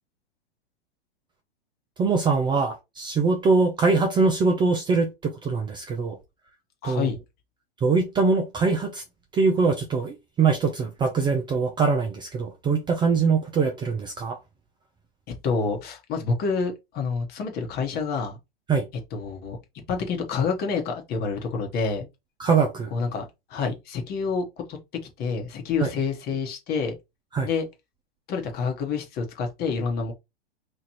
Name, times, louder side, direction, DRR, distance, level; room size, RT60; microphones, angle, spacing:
voice 1, 2.0-6.2 6.8-7.1 7.8-9.0 9.3-14.4 18.7-18.9 22.4-22.9 25.8-25.9 27.3-27.5, right 4 dB, 15° right, 0.5 m, -23 dB
voice 2, 6.8-7.2 15.3-18.4 19.1-19.6 19.9-22.1 22.9-24.8 25.2-26.9 27.4-27.6 28.3-30.1, left 5 dB, 30° left, 1.1 m, -28 dB
3.1 x 2.5 x 4.1 m
hypercardioid pair, 110°, 31 cm